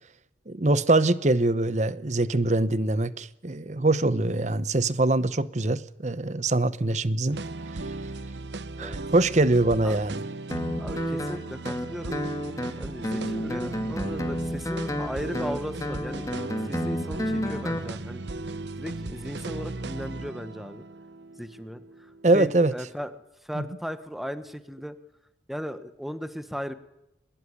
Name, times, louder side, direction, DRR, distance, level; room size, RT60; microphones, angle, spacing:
voice 1, 0.5-7.4 8.8-10.2 22.2-22.7 23.6-23.7, right 2 dB, 40° right, 0.9 m, -23 dB
sound 1, 7.3-22.5, right 2 dB, 80° right, 0.9 m, -37 dB
Guitar, 10.5-17.9, equal, 20° left, 2.0 m, -31 dB
voice 2, 10.8-12.2 12.7-16.3 16.6-18.2 18.6-20.9 21.4-23.2 23.4-25.0 25.5-26.7, equal, ahead, 1.2 m, -36 dB
23.0 x 20.5 x 9.9 m
head